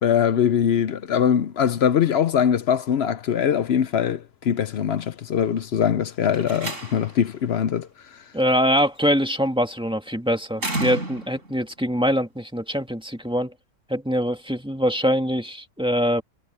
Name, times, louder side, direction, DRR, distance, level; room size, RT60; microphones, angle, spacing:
voice 1, 0.0-7.9, left 8 dB, 60° left, 0.7 m, -22 dB
Slam, 6.2-7.3 8.8-9.2 10.6-11.5, right 2 dB, 60° right, 5.5 m, -31 dB
voice 2, 8.3-13.5 13.9-16.2, equal, 5° right, 1.9 m, -23 dB
omnidirectional pair, 1.5 m